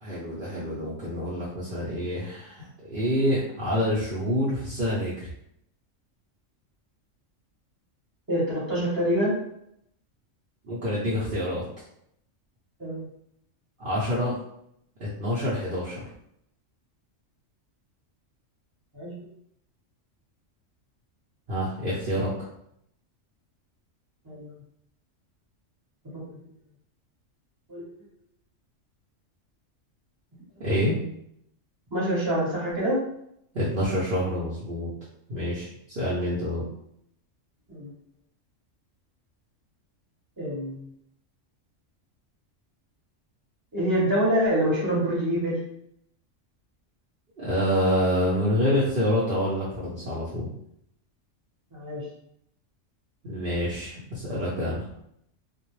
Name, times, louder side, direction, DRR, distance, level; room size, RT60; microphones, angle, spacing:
voice 1, 0.0-5.3 10.6-11.6 13.8-14.3 15.0-16.1 21.5-22.3 30.6-30.9 33.5-34.9 35.3-36.6 47.4-50.5 53.2-54.9, equal, 55° right, -8 dB, 0.7 m, -27 dB
voice 2, 8.3-9.4 12.8-13.1 18.9-19.1 24.3-24.6 26.0-26.4 27.7-27.8 31.9-33.0 37.7-37.9 40.4-40.9 43.7-45.6 51.7-52.0, equal, 20° right, -6 dB, 0.8 m, -26 dB
2.3 x 2.0 x 3.0 m, 0.73 s
omnidirectional pair, 1.3 m